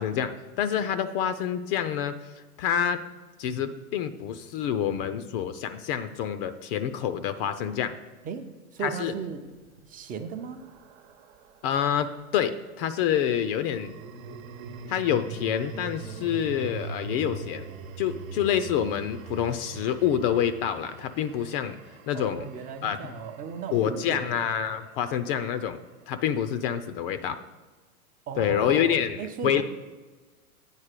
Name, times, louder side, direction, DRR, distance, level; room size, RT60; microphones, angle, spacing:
voice 1, 0.0-2.3 2.6-3.0 3.4-7.9 8.8-9.1 11.6-14.0 14.9-17.7 18.0-21.8 22.1-22.5 22.8-23.1 23.7-25.8 26.1-27.4 28.4-29.6, left 9 dB, 40° left, 11 dB, 0.5 m, -27 dB
voice 2, 8.7-9.5 9.8-10.6 22.1-24.5 28.3-29.6, right 6 dB, 20° right, 7 dB, 0.5 m, -36 dB
sound 1, 9.5-11.8 13.4-25.7, right 5 dB, 65° right, 1.0 m, -43 dB
8.9 x 4.1 x 6.6 m, 1.3 s
hypercardioid pair, 120°, 43 cm